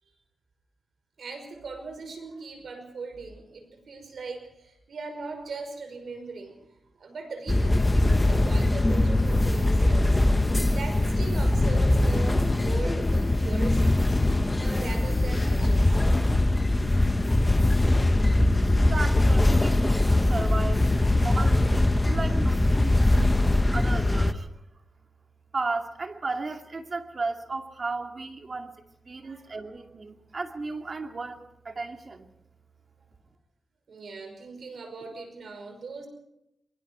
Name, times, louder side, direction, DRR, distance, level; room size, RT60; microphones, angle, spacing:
voice 1, 1.2-6.6 7.0-14.1 14.6-16.1 21.3-21.5 22.3-22.4 29.2-29.7 33.9-36.1, right 4 dB, 65° right, 6 dB, 5.4 m, -40 dB
sound 1, 7.5-24.3, left 1 dB, 15° left, 1.1 m, -22 dB
voice 2, 18.8-24.6 25.5-28.7 29.0-32.3, right 3 dB, 40° right, 5 dB, 2.4 m, -35 dB
24.5 x 23.5 x 4.6 m, 0.82 s
wide cardioid pair, 115°, 0 cm